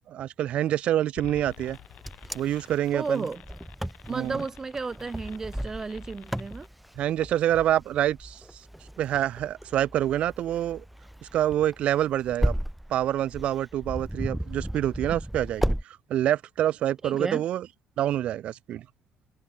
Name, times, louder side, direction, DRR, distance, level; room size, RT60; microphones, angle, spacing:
voice 1, 0.1-1.8 2.3-3.3 4.1-4.5 6.9-8.6 9.0-10.8 11.3-12.5 12.9-17.7 18.0-18.9, right 12 dB, 65° right, 1.2 m, -27 dB
sound 1, 1.2-6.7, left 13 dB, 70° left, 3.2 m, -50 dB
Wind, 1.6-15.8, equal, ahead, 2.3 m, -34 dB
voice 2, 2.9-3.4 4.1-6.7 17.0-17.4, right 4 dB, 20° right, 0.6 m, -33 dB
cardioid pair, 115°, 2 cm